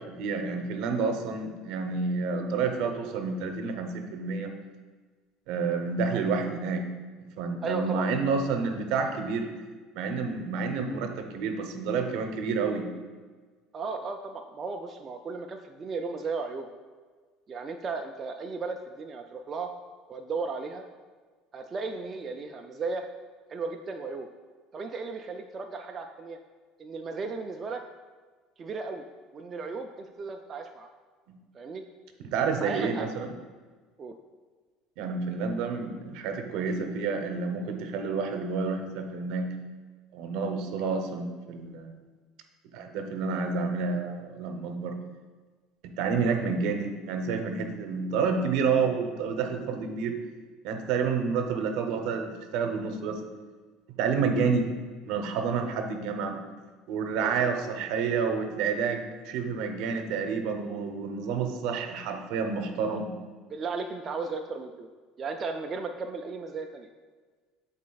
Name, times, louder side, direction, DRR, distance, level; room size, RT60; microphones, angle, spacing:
voice 1, 0.0-4.5 5.5-6.9 7.2-9.5 9.9-12.9 31.3-31.4 32.2-33.3 35.0-39.5 40.1-41.9 42.7-45.0 45.8-50.1 50.6-53.2 54.0-54.7 55.0-56.4 56.9-63.1, right 5 dB, 70° right, 5 dB, 0.8 m, -29 dB
voice 2, 7.6-8.1 13.7-16.7 17.5-19.7 20.1-20.8 21.5-23.1 23.5-24.3 24.7-26.4 26.8-27.8 28.6-29.1 29.3-30.9 31.5-31.8 32.6-33.1 34.0-34.2 57.2-57.5 62.9-63.0 63.5-64.9 65.2-66.9, right 4 dB, 30° right, 3 dB, 0.3 m, -35 dB
10.5 x 4.1 x 2.3 m, 1.4 s
cardioid pair, 135°, 0 cm